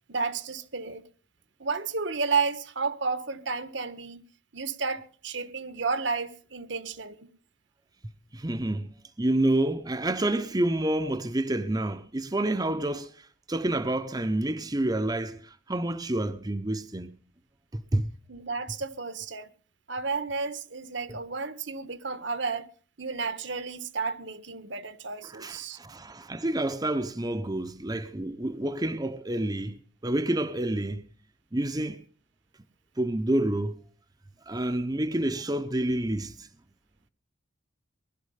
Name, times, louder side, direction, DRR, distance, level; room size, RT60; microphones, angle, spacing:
voice 1, 0.1-1.0 1.6-4.2 4.5-7.3 18.3-19.5 19.9-22.7 23.0-25.8, right 4 dB, 65° right, 1.3 m, -32 dB
voice 2, 8.3-17.1 17.7-18.1 25.2-31.0 31.5-32.0 33.0-33.8 34.5-36.5, right 1 dB, 20° right, 0.8 m, -29 dB
20.0 x 12.5 x 5.7 m
head